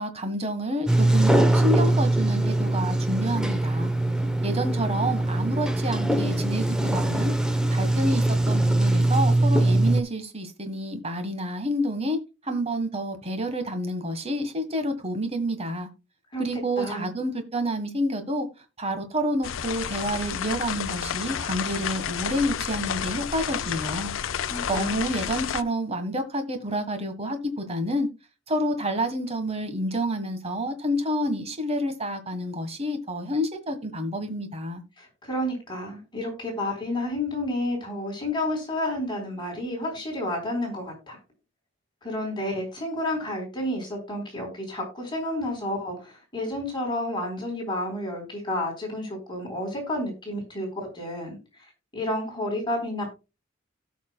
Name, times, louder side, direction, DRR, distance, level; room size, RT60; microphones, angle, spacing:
voice 1, 0.0-3.9 4.4-7.3 7.7-12.2 12.4-15.9 16.4-18.5 18.8-24.1 24.7-28.1 28.5-34.8, equal, 30° right, 1.6 m, -29 dB
Sliding door, 0.9-10.0, right 1 dB, 5° right, 0.9 m, -22 dB
voice 2, 16.3-17.1 24.5-25.0 35.0-41.2 42.0-50.7 50.9-51.4 51.9-53.1, left 1 dB, 25° left, 4.2 m, -30 dB
sound 1, 19.4-25.6, left 8 dB, 75° left, 0.5 m, -31 dB
17.0 x 6.0 x 2.3 m
head